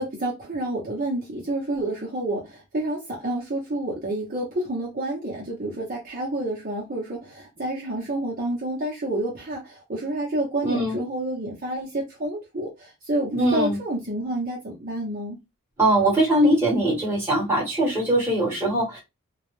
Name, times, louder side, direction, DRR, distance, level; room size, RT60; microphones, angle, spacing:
voice 1, 0.0-15.4, right 1 dB, 40° right, 0.7 m, -29 dB
voice 2, 10.6-11.0 13.3-13.8 15.8-19.0, right 1 dB, 10° right, 1.2 m, -21 dB
2.3 x 2.1 x 3.0 m
head